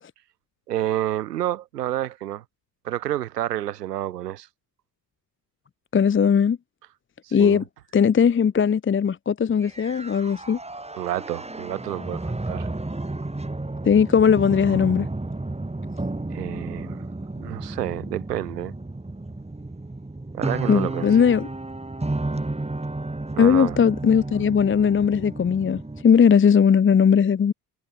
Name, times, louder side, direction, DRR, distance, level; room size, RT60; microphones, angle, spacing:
voice 1, 0.7-2.4 2.8-4.5 7.2-7.6 11.0-12.7 16.3-17.1 17.4-18.7 20.3-21.1 23.3-23.8, right 13 dB, 90° right, 2.6 m, -29 dB
voice 2, 5.9-6.6 7.3-7.6 7.9-10.6 13.8-15.1 20.7-21.5 23.4-27.5, left 7 dB, 25° left, 0.7 m, -18 dB
sound 1, 9.6-26.0, right 2 dB, 15° right, 3.5 m, -32 dB
hypercardioid pair, 45°, 47 cm